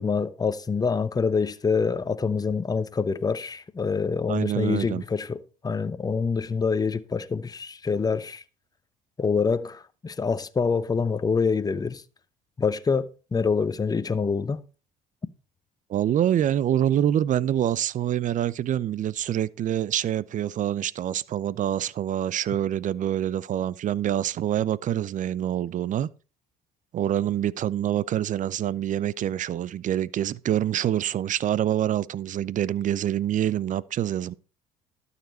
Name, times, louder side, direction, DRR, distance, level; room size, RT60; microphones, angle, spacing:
voice 1, 0.0-5.4 5.6-8.4 9.2-12.0 12.6-14.6, left 5 dB, 25° left, 0.9 m, -26 dB
voice 2, 4.3-5.0 15.9-26.1 26.9-34.3, right 11 dB, 50° right, 0.6 m, -26 dB
12.0 x 6.9 x 4.3 m
supercardioid pair, 75°, 17 cm